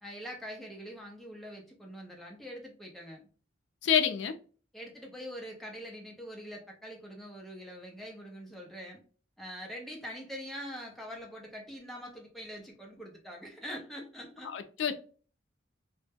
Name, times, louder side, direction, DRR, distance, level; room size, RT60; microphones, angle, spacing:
voice 1, 0.0-3.2 4.7-9.0 9.4-14.5, equal, ahead, 0.5 m, -44 dB
voice 2, 3.8-4.3 14.5-15.0, left 8 dB, 70° left, 0.4 m, -27 dB
2.1 x 2.0 x 3.3 m
head